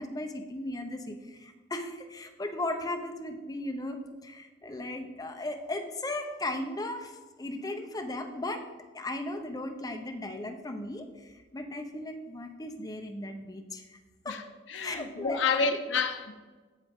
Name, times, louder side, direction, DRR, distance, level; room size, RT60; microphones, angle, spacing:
voice 1, 0.0-8.6 8.9-14.0 14.2-14.4 14.8-15.4 15.7-15.8, left 1 dB, 20° left, 0.6 m, -36 dB
voice 2, 14.7-16.3, left 5 dB, 65° left, 0.7 m, -29 dB
8.1 x 7.5 x 3.5 m
head